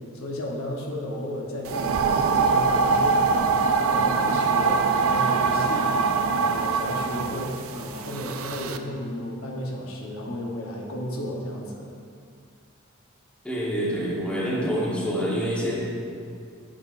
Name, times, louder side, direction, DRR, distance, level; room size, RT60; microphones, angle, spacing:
voice 1, 0.1-11.9, equal, 75° left, -1 dB, 1.0 m, -34 dB
sound 1, 1.6-8.8, right 4 dB, 70° right, 0.4 m, -23 dB
voice 2, 13.4-15.8, equal, 5° left, -6 dB, 1.3 m, -26 dB
9.0 x 6.6 x 2.6 m, 2.3 s
head